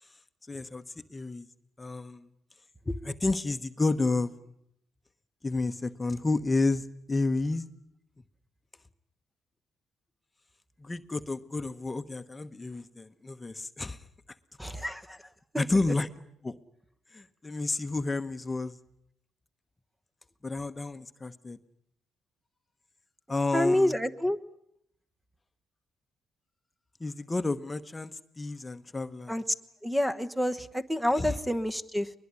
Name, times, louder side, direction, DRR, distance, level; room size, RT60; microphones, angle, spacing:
voice 1, 0.5-0.8 1.1-1.5 1.8-2.3 2.8-4.3 5.4-7.7 10.8-14.1 15.6-16.1 16.4-16.6 17.1-18.8 20.4-21.6 23.3-24.0 27.0-29.4 31.1-31.4, left 3 dB, 20° left, 9 dB, 1.1 m, -31 dB
voice 2, 14.6-15.2 15.5-15.6 23.5-24.4 29.3-29.4 29.8-32.1, left 1 dB, 5° right, 8 dB, 1.2 m, -28 dB
22.0 x 21.5 x 9.7 m, 0.74 s
cardioid pair, 90°, 0 cm